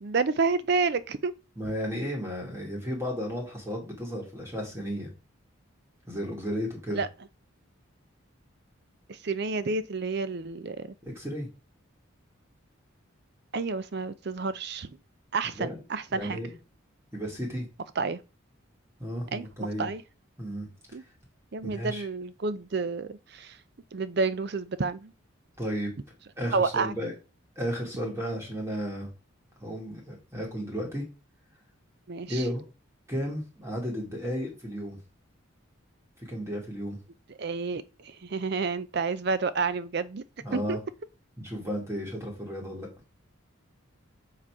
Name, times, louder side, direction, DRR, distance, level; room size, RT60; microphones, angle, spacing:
voice 1, 0.0-1.3 6.9-7.1 9.1-10.9 13.5-15.0 15.3-16.4 18.0-18.2 19.3-20.0 20.9-21.0 21.5-23.6 23.9-25.1 26.5-26.9 32.1-32.4 37.4-40.2 40.5-40.8, right 4 dB, 50° right, 0.5 m, -30 dB
voice 2, 1.6-5.1 6.1-7.0 11.0-11.5 15.5-15.8 16.1-16.5 17.1-17.7 19.0-19.9 20.4-20.7 21.6-22.0 25.6-25.9 26.4-27.1 27.6-29.1 29.6-31.0 32.3-32.6 33.1-35.0 36.3-37.0 40.4-40.8 41.4-42.9, equal, 15° right, 2.4 m, -33 dB
7.5 x 4.2 x 4.8 m
head